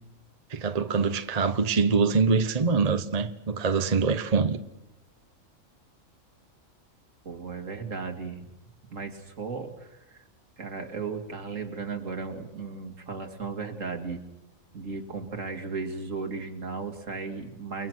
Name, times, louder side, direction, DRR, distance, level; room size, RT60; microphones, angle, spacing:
voice 1, 0.5-4.6, right 5 dB, 30° right, 1.0 m, -24 dB
voice 2, 7.2-8.5 8.9-10.2 10.6-14.2 14.7-17.9, right 4 dB, 65° right, 2.7 m, -35 dB
29.5 x 21.0 x 6.3 m
omnidirectional pair, 1.4 m